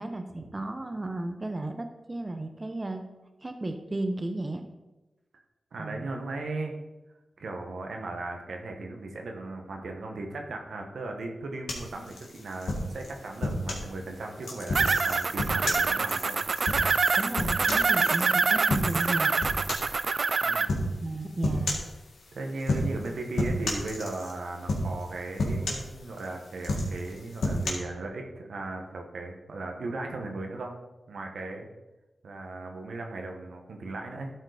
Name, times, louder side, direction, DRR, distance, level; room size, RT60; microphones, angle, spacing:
voice 1, 0.0-3.0 3.4-4.6 5.8-6.1 17.2-19.3 21.0-21.8, right 2 dB, 35° right, 6 dB, 0.9 m, -34 dB
voice 2, 5.7-6.7 7.4-16.4 20.4-20.7 22.3-30.7 31.1-31.7 32.2-34.3, right 2 dB, 80° right, 3 dB, 1.1 m, -37 dB
sound 1, 11.7-13.9 14.4-18.2 18.7-19.1 19.4-20.0 20.7-20.9 21.4-21.9 22.6-23.1 23.4-24.3 24.7-25.1 25.4-26.2 26.6-27.7, left 1 dB, 85° left, 1.8 m, -30 dB
sound 2, 14.7-20.7, right 4 dB, 60° right, 0.4 m, -25 dB
12.0 x 4.5 x 5.0 m, 1.0 s
cardioid pair, 45°, 0 cm